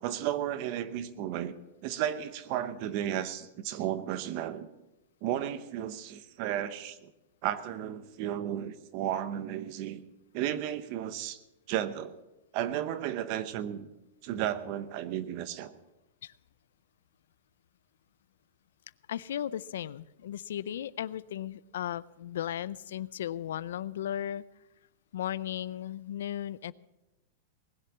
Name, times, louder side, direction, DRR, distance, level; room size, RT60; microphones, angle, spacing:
voice 1, 0.0-1.5 1.8-4.7 5.2-7.1 7.4-10.0 10.3-11.4 11.7-12.2 12.5-13.9 14.2-15.7, right 11 dB, 35° right, 14 dB, 0.8 m, -33 dB
voice 2, 19.1-24.4 25.1-26.7, left 11 dB, 80° left, 20 dB, 0.4 m, -36 dB
19.5 x 7.6 x 7.2 m, 0.98 s
supercardioid pair, 175°, 0 cm